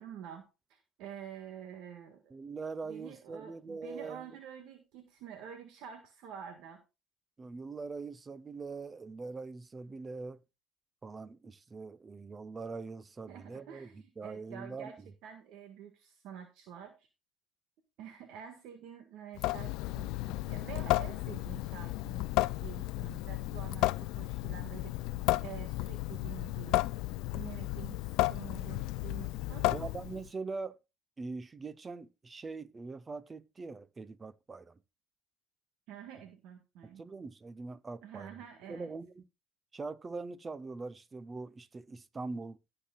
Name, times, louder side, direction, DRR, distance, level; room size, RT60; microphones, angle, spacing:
voice 1, 0.0-2.3 2.8-6.8 13.3-15.0 15.2-17.1 18.0-22.3 22.6-24.9 25.4-26.8 27.3-28.0 28.3-30.0 35.9-37.0 38.0-38.9, right 9 dB, 75° right, 1.7 m, -48 dB
voice 2, 2.3-4.3 7.4-10.4 11.0-15.1 29.7-30.8 31.2-34.8 36.8-38.4 38.7-39.3 39.7-42.6, right 4 dB, 25° right, 0.8 m, -42 dB
Water tap faucet / Sink (filling or washing) / Drip, 19.3-30.3, left 19 dB, 75° left, 0.4 m, -33 dB
18.0 x 6.8 x 2.4 m
supercardioid pair, 85°, 0 cm